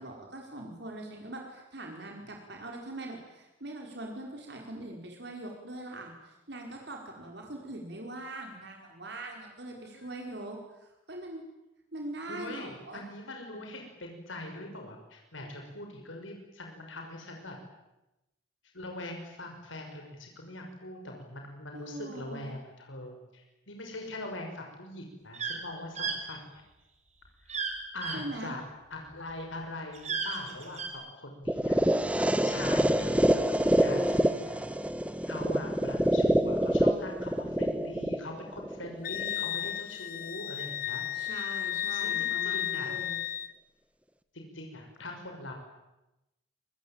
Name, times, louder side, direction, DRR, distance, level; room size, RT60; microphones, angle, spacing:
voice 1, 0.0-11.4 11.9-13.0 21.7-22.5 28.1-28.5 41.1-43.2, right 2 dB, 60° right, 1 dB, 5.0 m, -42 dB
voice 2, 9.8-10.2 12.3-17.6 18.7-26.4 27.4-27.7 27.9-28.6 28.9-31.8 32.2-34.6 35.2-41.0 41.9-42.9 44.3-45.5, left 1 dB, 85° left, 2 dB, 5.9 m, -42 dB
sound 1, 25.3-25.6 26.0-26.2 27.5-27.7 28.0-28.2 29.9-30.9, right 6 dB, 35° right, 4.8 m, -33 dB
sound 2, 31.5-39.5, equal, 5° right, 1.3 m, -26 dB
Wind instrument woodwind instrument, 39.0-43.5, left 11 dB, 45° left, 1.0 m, -33 dB
27.5 x 23.5 x 8.9 m, 0.95 s
head